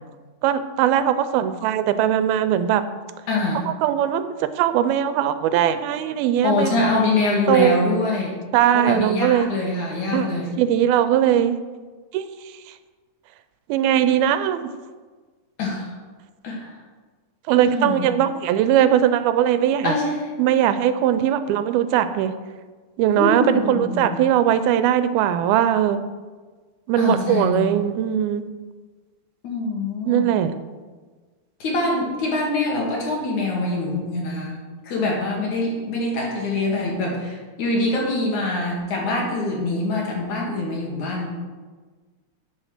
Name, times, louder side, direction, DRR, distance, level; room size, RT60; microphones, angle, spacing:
voice 1, 0.4-2.8 3.7-6.8 7.5-7.9 8.5-9.5 10.1-10.3 10.6-11.6 12.1-12.3 13.7-14.7 17.5-19.9 20.4-22.3 23.0-26.0 26.9-28.5 30.0-30.5, right 10 dB, 85° right, 11 dB, 2.5 m, -20 dB
voice 2, 3.3-3.7 6.4-8.4 8.7-10.5 15.6-15.9 16.4-16.7 17.6-18.1 19.8-20.3 23.1-24.2 27.0-27.7 29.4-30.3 31.6-41.3, left 2 dB, 55° left, -2 dB, 3.2 m, -24 dB
8.3 x 7.7 x 6.5 m, 1.4 s
omnidirectional pair, 4.3 m